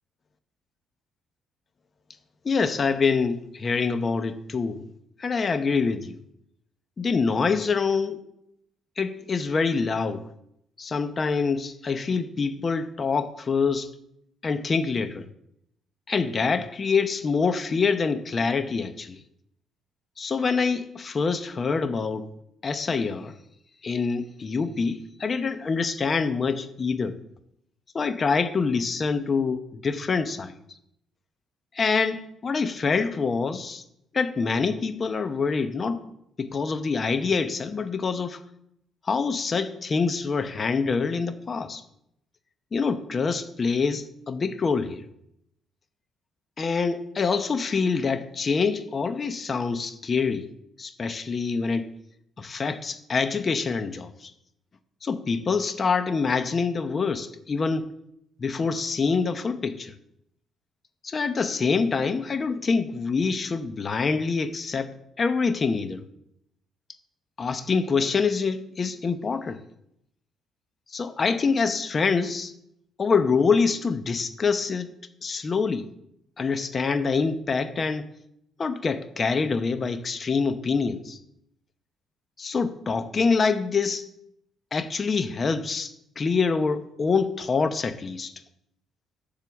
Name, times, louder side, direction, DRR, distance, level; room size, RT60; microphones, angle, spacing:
voice 1, 2.4-4.9 5.2-6.2 7.0-8.2 9.0-10.3 10.8-13.9 14.4-15.3 16.1-19.2 20.2-22.3 22.6-23.3 23.8-27.2 27.9-30.6 31.7-33.8 34.1-36.0 36.4-38.4 39.1-41.8 42.7-45.0 46.6-50.5 50.8-51.9 52.4-54.3 55.0-57.9 58.4-59.9 61.0-64.9 65.2-66.0 67.4-69.6 70.9-72.5 73.0-74.9 75.2-75.9 76.4-78.1 78.6-81.2 82.4-84.1 84.7-88.3, left 5 dB, 40° left, 0.9 m, -25 dB
7.6 x 6.9 x 6.9 m
cardioid pair, 85°, 0 cm